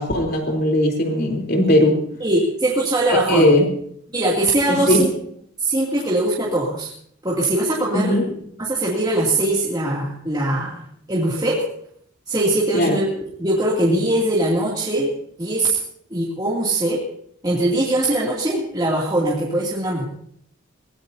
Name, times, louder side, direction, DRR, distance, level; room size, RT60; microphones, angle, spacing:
voice 1, 0.0-2.0 3.1-3.7 4.7-5.1 7.9-8.3 12.7-13.0, left 1 dB, 50° left, 2 dB, 3.8 m, -18 dB
voice 2, 2.2-3.5 4.1-5.1 5.6-6.9 7.2-8.2 8.6-11.6 12.3-13.1 13.4-15.1 15.4-15.8 16.1-17.0 17.4-20.0, right 1 dB, 20° right, -6 dB, 2.8 m, -21 dB
23.0 x 19.0 x 2.8 m, 0.66 s
head